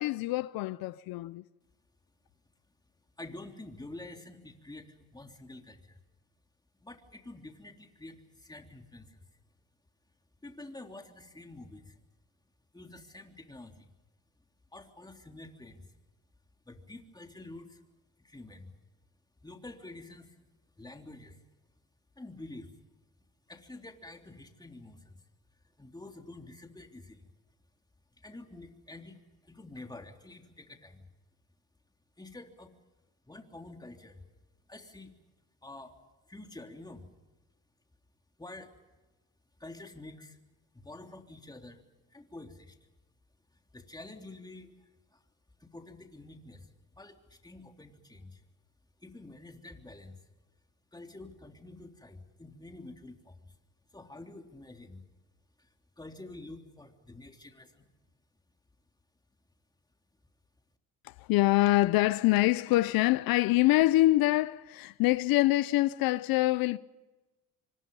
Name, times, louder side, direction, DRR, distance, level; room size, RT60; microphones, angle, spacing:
voice 1, 0.0-1.4 61.0-66.8, left 17 dB, 85° left, 0.7 m, -25 dB
voice 2, 3.2-6.0 6.8-9.2 10.4-12.0 12.7-13.9 14.7-15.9 16.6-17.8 18.2-18.7 19.4-20.4 20.8-21.4 22.1-22.7 23.5-25.2 25.8-27.3 28.2-31.1 32.2-32.7 33.3-34.2 34.7-35.2 35.6-35.9 36.3-37.1 38.4-38.7 39.6-40.4 40.7-41.8 42.1-42.8 43.5-45.2 45.6-48.4 49.0-50.2 50.9-53.6 53.9-55.0 55.6-57.9, left 2 dB, 10° left, 3.4 m, -48 dB
26.5 x 25.0 x 5.5 m
cardioid pair, 95°, 35 cm